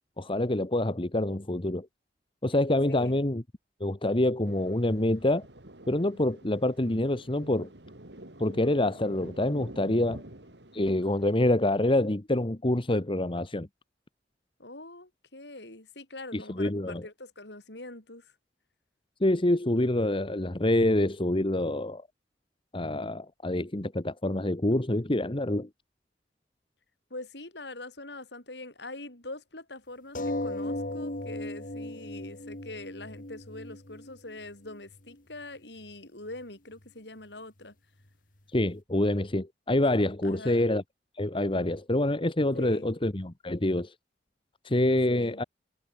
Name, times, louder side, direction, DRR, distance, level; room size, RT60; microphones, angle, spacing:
voice 1, 0.2-1.9 2.4-3.4 3.8-5.5 5.9-7.7 8.4-10.2 10.7-13.7 16.3-17.1 19.2-22.0 22.7-25.7 38.5-40.8 41.2-43.9 44.6-45.4, left 1 dB, 30° left, 1.4 m, -26 dB
voice 2, 2.9-3.2 14.6-18.3 27.1-37.7 40.2-40.7 42.5-42.9 45.1-45.4, left 2 dB, 70° left, 6.8 m, -43 dB
Thunder, 4.5-11.5, right 1 dB, 75° right, 4.4 m, -49 dB
sound 1, 30.1-35.2 35.9-36.0 36.3-36.4, left 1 dB, 50° left, 3.1 m, -36 dB
head